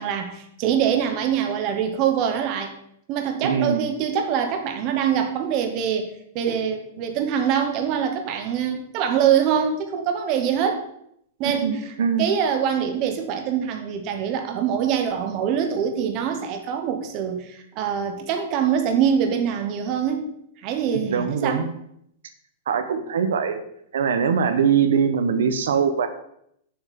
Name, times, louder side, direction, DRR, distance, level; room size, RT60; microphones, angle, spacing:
voice 1, 0.0-2.7 3.1-6.1 6.3-10.8 11.4-20.3 20.6-21.7, right 8 dB, 25° right, 5 dB, 1.0 m, -24 dB
voice 2, 3.4-3.8 11.6-12.3 20.9-21.7 22.7-23.6 23.9-26.1, right 6 dB, 85° right, 9 dB, 1.1 m, -22 dB
7.1 x 5.8 x 6.9 m, 0.73 s
supercardioid pair, 180°, 0 cm